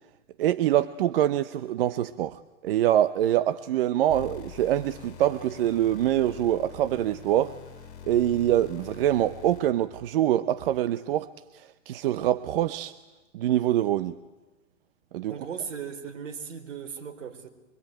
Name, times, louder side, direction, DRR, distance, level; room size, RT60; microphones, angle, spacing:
voice 1, 0.4-7.5 8.1-11.3 11.5-12.9 13.3-14.1 15.1-15.4, right 12 dB, 50° right, 13 dB, 0.9 m, -25 dB
sound 1, 4.1-9.8, left 8 dB, 35° left, 7.2 m, -45 dB
voice 2, 15.3-17.5, right 7 dB, 70° right, 5 dB, 4.7 m, -37 dB
24.5 x 24.5 x 9.2 m, 1.2 s
hypercardioid pair, 145°, 38 cm